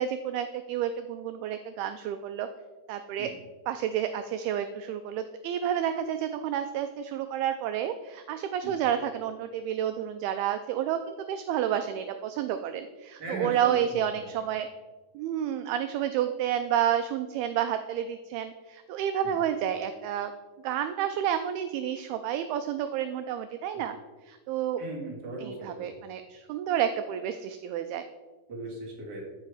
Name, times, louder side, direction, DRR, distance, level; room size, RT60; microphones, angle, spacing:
voice 1, 0.0-2.5 2.9-3.3 3.7-14.7 15.1-20.3 20.6-24.0 24.2-24.8 25.4-28.0, right 10 dB, 85° right, 8 dB, 2.3 m, -30 dB
voice 2, 13.2-14.1 14.4-14.5 19.2-19.4 24.8-25.9 28.5-29.2, right 2 dB, 30° right, -2 dB, 2.2 m, -38 dB
14.5 x 5.5 x 4.9 m, 1.3 s
omnidirectional pair, 4.9 m